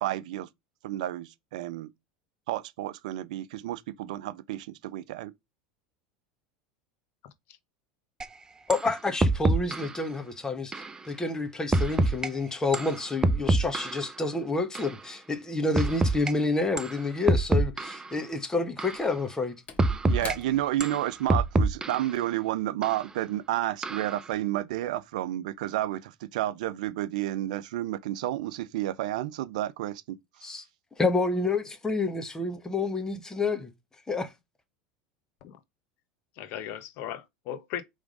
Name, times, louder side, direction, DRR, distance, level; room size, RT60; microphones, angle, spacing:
voice 1, 0.0-0.5 0.8-1.9 2.5-5.3 20.0-30.5, right 14 dB, 80° right, 0.6 m, -31 dB
voice 2, 7.2-7.6 35.4-35.6 36.4-37.8, left 10 dB, 60° left, 1.1 m, -38 dB
sound 1, 8.2-8.3 8.7-8.9 9.2-10.0 10.7-10.9 11.7-12.3 12.7-14.1 14.8-14.9 15.8-16.3 16.8-17.0 17.3-18.1 18.8-19.0 19.8-20.4 20.8-22.1 22.8-23.0 23.8-24.2, right 2 dB, 15° right, 0.6 m, -26 dB
voice 3, 8.7-19.6 30.4-30.6 31.0-33.7 34.1-34.3, left 3 dB, 15° left, 1.4 m, -29 dB
Slam / Wood, 18.8-23.5 23.8-24.0, left 5 dB, 30° left, 1.4 m, -47 dB
5.1 x 3.6 x 5.2 m
supercardioid pair, 100°, 4 cm